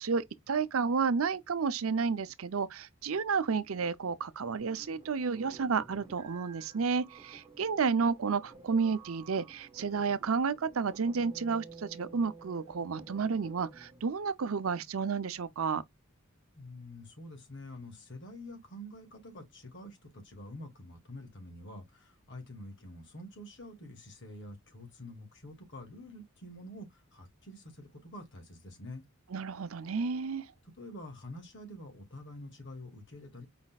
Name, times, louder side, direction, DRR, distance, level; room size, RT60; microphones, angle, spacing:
voice 1, 0.0-15.8 29.3-30.4, right 5 dB, 80° right, 0.6 m, -31 dB
sound 1, 4.6-14.1, right 4 dB, 25° right, 1.4 m, -53 dB
voice 2, 16.6-29.0 30.6-33.5, left 1 dB, 60° left, 2.1 m, -47 dB
5.0 x 4.1 x 2.3 m
head